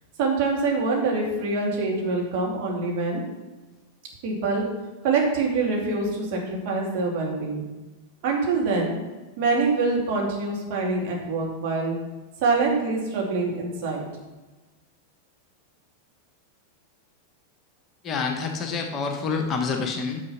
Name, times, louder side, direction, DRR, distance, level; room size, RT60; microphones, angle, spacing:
voice 1, 0.2-3.2 4.2-4.6 5.0-7.6 8.2-8.9 9.4-12.0 12.4-14.1, right 3 dB, 45° right, -2 dB, 2.7 m, -25 dB
voice 2, 18.0-20.2, left 5 dB, 30° left, 3 dB, 1.1 m, -27 dB
9.6 x 5.8 x 5.7 m, 1.2 s
figure-of-eight pair, 90°, 0 cm